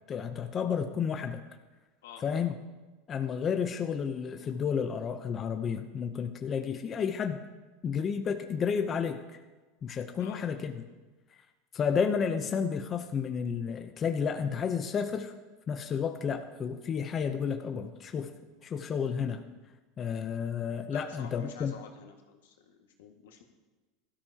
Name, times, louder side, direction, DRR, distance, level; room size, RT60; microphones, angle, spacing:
voice 1, 0.1-1.4 2.2-2.6 3.1-7.4 7.8-9.2 9.8-10.7 11.7-15.3 15.7-18.3 18.6-19.4 20.0-21.7, left 6 dB, 30° left, 6 dB, 0.7 m, -31 dB
voice 2, 20.9-23.4, left 7 dB, 90° left, 2 dB, 1.8 m, -49 dB
16.5 x 13.0 x 2.9 m, 1.2 s
supercardioid pair, 125°, 0 cm